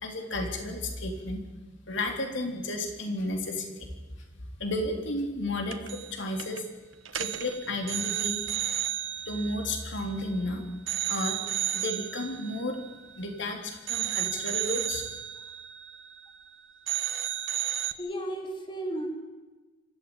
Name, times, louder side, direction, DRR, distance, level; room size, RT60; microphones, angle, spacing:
voice 1, 0.0-1.4 1.9-3.9 4.6-6.7 7.1-8.4 9.3-10.7 11.1-11.4 11.7-12.8 13.1-15.1, left 1 dB, 65° left, 3 dB, 3.4 m, -32 dB
sound 1, 5.7-6.1 6.4-6.6 7.1-10.4 10.9-13.5 13.9-16.5 16.9-17.9, right 12 dB, 90° right, 1.3 m, -33 dB
voice 2, 18.0-19.1, right 1 dB, 25° left, 3 dB, 3.7 m, -34 dB
27.0 x 14.5 x 8.8 m, 1.2 s
head